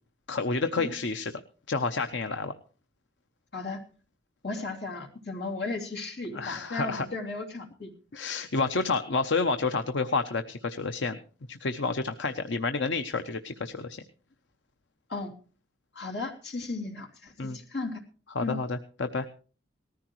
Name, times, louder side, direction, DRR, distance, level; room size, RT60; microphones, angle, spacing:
voice 1, 0.3-1.3 1.7-2.5 6.3-7.1 8.1-11.2 11.5-14.0 17.4-17.6 18.4-19.3, left 4 dB, 80° left, 8 dB, 0.8 m, -29 dB
voice 2, 4.4-7.9 15.1-15.3 15.9-18.0 18.4-18.6, left 3 dB, 60° left, 0 dB, 3.0 m, -35 dB
19.0 x 14.5 x 3.1 m, 0.39 s
head